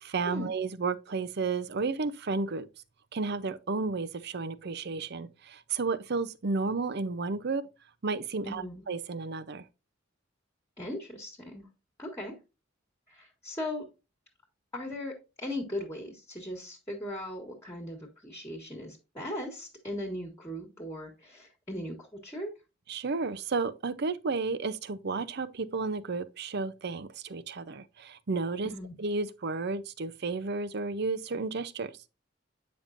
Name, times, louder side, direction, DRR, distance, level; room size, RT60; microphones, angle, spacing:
voice 1, 0.0-2.7 3.1-7.6 8.0-9.6 22.9-28.7 29.0-31.9, right 4 dB, 55° right, 0.6 m, -32 dB
voice 2, 8.4-8.8 10.8-11.7 12.0-12.3 13.1-13.8 14.7-22.5 28.6-28.9, left 1 dB, 15° left, 1.4 m, -38 dB
8.6 x 5.2 x 2.5 m
head